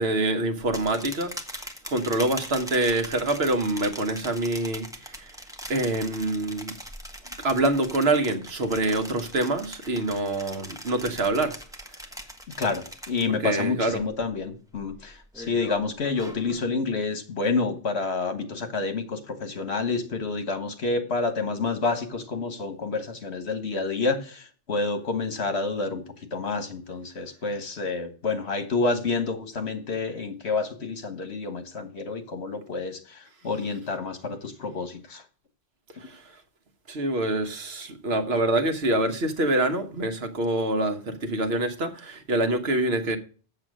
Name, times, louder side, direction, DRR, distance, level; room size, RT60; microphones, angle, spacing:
voice 1, 0.0-1.3 1.9-5.3 5.7-6.7 7.4-11.5 13.3-14.0 36.0-36.2 36.9-43.2, right 2 dB, 65° right, 1.4 m, -26 dB
sound 1, 0.6-13.6 13.9-14.3 14.7-16.6, equal, 5° right, 1.3 m, -41 dB
voice 2, 12.6-26.0 26.3-35.2, left 4 dB, 70° left, 1.7 m, -29 dB
7.7 x 7.2 x 6.2 m
omnidirectional pair, 1.1 m